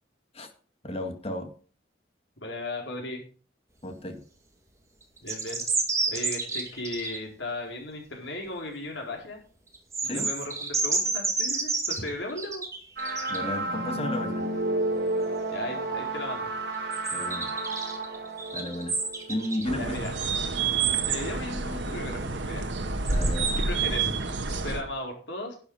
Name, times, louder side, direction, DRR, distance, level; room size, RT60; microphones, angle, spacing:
voice 1, 0.8-1.5 3.8-4.2 10.0-10.3 13.3-14.5 17.1-17.6 18.5-19.0 19.3-20.0 23.1-23.6, left 1 dB, 30° left, 6 dB, 2.0 m, -33 dB
voice 2, 2.4-3.2 5.2-5.7 6.1-9.4 10.0-12.6 15.5-16.5 19.8-20.2 21.0-22.7 23.6-24.1 24.5-25.6, left 2 dB, 80° left, 1 dB, 4.5 m, -36 dB
sound 1, 5.2-7.2 9.7-13.5 16.9-19.7 23.1-23.5, right 4 dB, 15° right, 2.2 m, -29 dB
sound 2, 13.0-19.8, right 2 dB, 60° right, 4.1 m, -31 dB
sound 3, 19.6-24.8, right 4 dB, 80° right, 1.6 m, -28 dB
11.0 x 8.6 x 5.7 m, 0.40 s
head